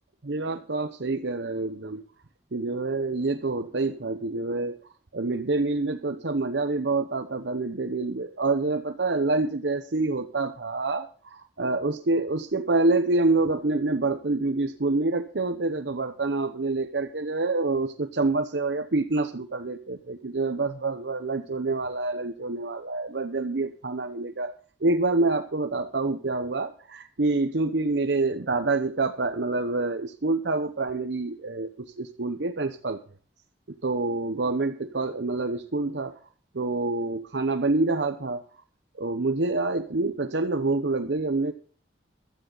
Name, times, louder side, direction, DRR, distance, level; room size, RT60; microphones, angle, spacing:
voice 1, 0.2-2.0 2.5-4.8 5.1-33.0 33.8-36.2 36.5-38.4 39.0-41.5, right 3 dB, 80° right, 0.9 m, -27 dB
16.0 x 12.5 x 4.0 m
head